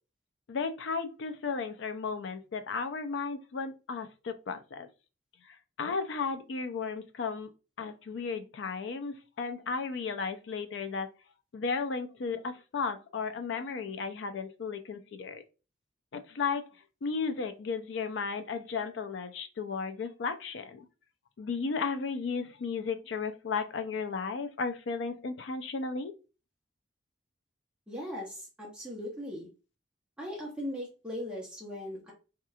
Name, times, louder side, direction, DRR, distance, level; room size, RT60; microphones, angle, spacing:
voice 1, 0.5-4.9 5.5-7.5 7.8-11.1 11.5-15.4 16.1-16.7 17.0-20.9 21.4-26.1, left 5 dB, 90° left, 0.4 m, -34 dB
voice 2, 27.9-29.5 30.2-32.1, left 1 dB, 5° right, 0.7 m, -39 dB
2.9 x 2.4 x 2.3 m
head